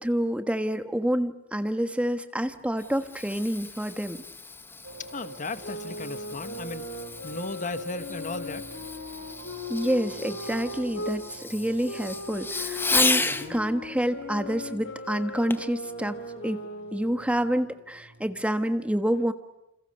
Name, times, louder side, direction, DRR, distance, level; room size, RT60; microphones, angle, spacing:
voice 1, 0.0-4.2 9.7-13.2 13.5-16.2 16.4-16.6 16.9-19.3, equal, 5° right, 9 dB, 1.3 m, -28 dB
Fireworks, 2.5-13.5 15.5-15.8 16.4-16.5, left 3 dB, 10° left, 1.0 m, -33 dB
sound 1, 4.8-18.4, right 2 dB, 80° right, 6.2 m, -48 dB
voice 2, 5.1-6.9 7.2-8.6 13.2-13.6, left 3 dB, 40° left, 11 dB, 1.2 m, -36 dB
sound 2, 5.6-11.2 11.8-17.3, left 2 dB, 70° left, 5.1 m, -38 dB
29.0 x 28.0 x 6.5 m, 0.92 s
head